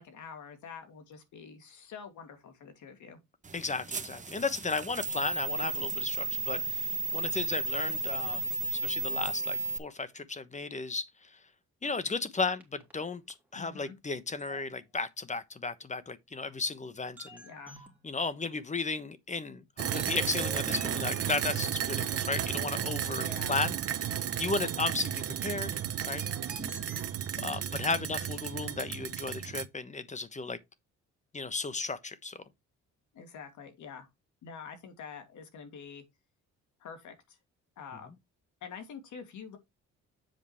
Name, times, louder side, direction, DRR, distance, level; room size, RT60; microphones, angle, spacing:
voice 1, 0.0-3.2 13.5-14.0 17.4-17.8 23.1-23.6 27.4-28.3 33.1-34.1 34.4-36.0 36.8-37.4 37.8-38.1 38.6-39.6, left 6 dB, 75° left, 2.6 m, -46 dB
sound 1, 3.4-9.8, right 3 dB, 25° right, 1.0 m, -34 dB
voice 2, 3.5-11.4 11.8-13.2 13.5-17.4 18.0-23.8 24.0-25.7 26.1-26.2 27.4-30.6 31.3-32.4, left 3 dB, 25° left, 1.1 m, -34 dB
sound 2, 12.6-13.0 13.3-13.4 14.4-14.6 16.3-16.4 17.2-18.0 18.7-19.0 19.9-21.9 22.6-22.7 23.1-23.2 26.2-27.1, right 2 dB, 5° right, 3.2 m, -46 dB
sound 3, 19.8-29.7, right 9 dB, 50° right, 0.9 m, -33 dB
7.8 x 5.1 x 4.4 m
cardioid pair, 90°, 30 cm